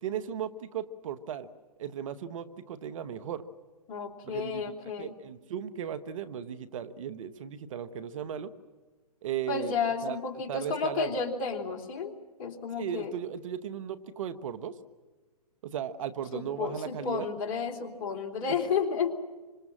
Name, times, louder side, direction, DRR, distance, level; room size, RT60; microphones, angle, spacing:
voice 1, 0.0-1.5 1.8-3.4 4.2-8.5 9.2-9.7 10.0-10.2 10.5-11.2 12.8-14.8 15.6-17.3, right 9 dB, 55° right, 12 dB, 1.5 m, -36 dB
voice 2, 3.9-5.1 9.5-12.1 12.4-13.1 16.3-19.1, left 5 dB, 35° left, 4 dB, 3.3 m, -32 dB
27.5 x 26.0 x 7.5 m, 1.3 s
hypercardioid pair, 135°, 21 cm